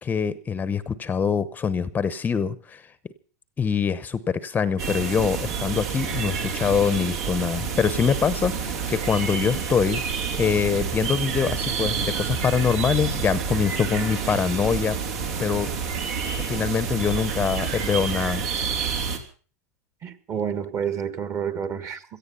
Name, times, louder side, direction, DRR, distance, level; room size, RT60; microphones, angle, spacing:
voice 1, 0.0-2.8 3.6-14.9 15.4-15.7 16.5-18.4, left 6 dB, 20° left, 0.8 m, -24 dB
sound 1, 4.8-19.2, right 6 dB, 75° right, 3.3 m, -28 dB
voice 2, 20.0-22.0, right 7 dB, 30° right, 1.5 m, -29 dB
17.5 x 14.0 x 5.6 m
hypercardioid pair, 120°, 9 cm